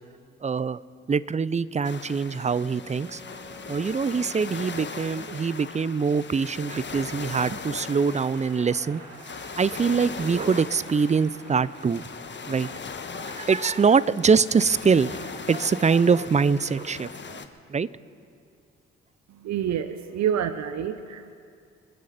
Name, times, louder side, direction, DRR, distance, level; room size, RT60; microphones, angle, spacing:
voice 1, 0.4-0.8 1.1-3.2 3.7-9.0 9.6-12.0 12.5-12.7 13.1-17.4 17.7-17.9, right 5 dB, 20° right, 19 dB, 0.6 m, -24 dB
sound 1, 1.8-17.5, left 5 dB, 35° left, 1.3 m, -39 dB
Wind instrument woodwind instrument, 2.0-5.9, right 1 dB, 5° left, 2.8 m, -50 dB
sound 2, 7.3-13.0, right 2 dB, 85° right, 4.7 m, -48 dB
voice 2, 19.3-21.3, right 9 dB, 60° right, 11 dB, 0.8 m, -28 dB
27.5 x 10.5 x 4.2 m, 2.4 s
hypercardioid pair, 45°, 31 cm